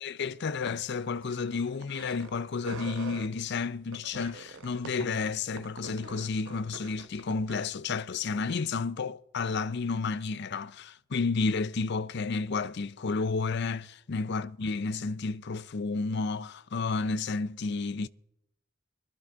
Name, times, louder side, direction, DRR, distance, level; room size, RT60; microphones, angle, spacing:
voice 1, 0.0-18.1, left 4 dB, 55° left, 0.5 m, -31 dB
sound 1, 0.6-2.4 2.6-3.3 3.9-7.7, right 4 dB, 75° right, 0.9 m, -45 dB
23.5 x 12.0 x 3.8 m
head